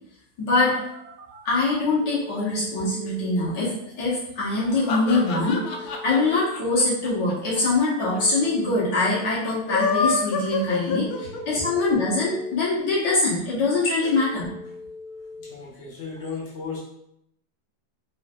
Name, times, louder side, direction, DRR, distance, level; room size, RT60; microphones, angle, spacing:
voice 1, 0.4-0.8 1.4-14.5, left 2 dB, 60° left, -8 dB, 1.7 m, -23 dB
Telephone, 0.6-1.5 2.0-3.5 5.0-6.5 8.0-9.5 11.0-12.5 14.0-15.5, left 3 dB, 75° right, 1.4 m, -41 dB
sound 1, 4.5-7.9 8.1-8.2 8.4-8.5 9.5-11.7, left 5 dB, 80° left, 0.8 m, -27 dB
voice 2, 10.9-11.7 14.0-14.2 15.4-16.8, left 5 dB, 40° left, -8 dB, 1.3 m, -37 dB
4.3 x 3.1 x 2.4 m, 0.75 s
omnidirectional pair, 2.2 m